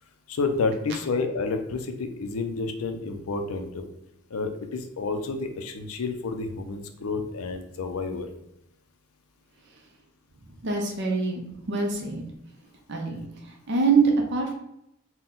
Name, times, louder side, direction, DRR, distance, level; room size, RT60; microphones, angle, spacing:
voice 1, 0.3-3.8 4.3-8.3 13.1-13.3, left 4 dB, 80° left, 7 dB, 0.5 m, -30 dB
voice 2, 10.6-11.4 11.7-12.2 12.9-13.2 13.7-14.5, right 4 dB, 55° right, 0 dB, 0.6 m, -24 dB
4.0 x 2.2 x 3.7 m, 0.83 s
head